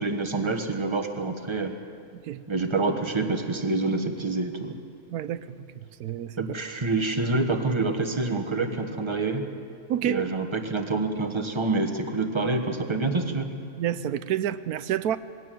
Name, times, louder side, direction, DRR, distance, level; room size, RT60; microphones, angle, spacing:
voice 1, 0.0-1.7 2.5-4.8 6.4-9.4 10.0-13.5, right 3 dB, 20° right, 5 dB, 1.4 m, -27 dB
voice 2, 5.1-5.7 6.0-6.4 9.9-10.2 13.8-15.2, right 11 dB, 85° right, 14 dB, 1.2 m, -29 dB
21.0 x 17.0 x 7.7 m, 2.5 s
omnidirectional pair, 1.6 m